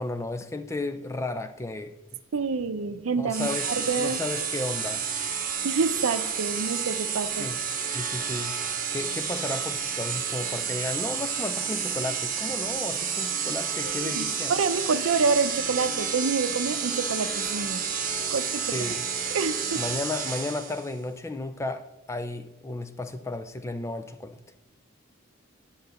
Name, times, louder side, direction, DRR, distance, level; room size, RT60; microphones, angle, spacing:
voice 1, 0.0-2.0 3.2-5.0 7.4-7.6 7.9-8.6 8.9-14.5 18.6-19.0 19.7-21.8 22.1-24.4, left 2 dB, 15° left, 9 dB, 0.4 m, -33 dB
voice 2, 2.3-4.2 5.6-7.5 13.8-17.8 18.3-18.8 19.3-19.8, right 4 dB, 85° right, 11 dB, 0.6 m, -27 dB
sound 1, 3.3-20.9, right 7 dB, 40° right, 1.1 m, -30 dB
10.0 x 3.9 x 6.8 m, 0.97 s
head